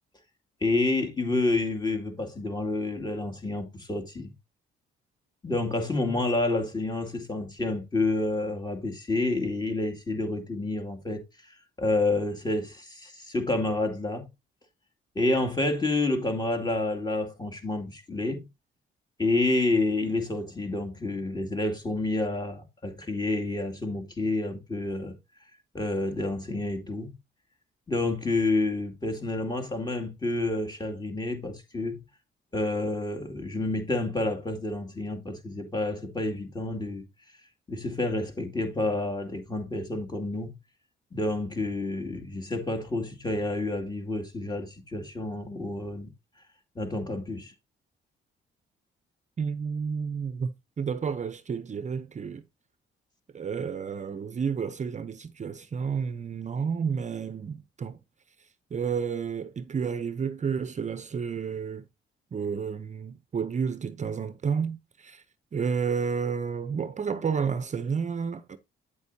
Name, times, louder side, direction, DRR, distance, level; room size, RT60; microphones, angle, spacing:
voice 1, 0.6-4.3 5.4-11.2 11.8-14.3 15.2-18.5 19.2-25.2 25.7-27.1 27.9-32.0 32.5-37.0 37.7-40.5 41.1-46.1 46.8-47.5, left 2 dB, 20° left, 2.4 m, -29 dB
voice 2, 49.4-52.4 53.3-58.0 58.7-61.9 62.3-65.2 65.5-68.6, right 6 dB, 35° right, 0.7 m, -31 dB
9.2 x 8.0 x 2.7 m
cardioid pair, 90°, 20 cm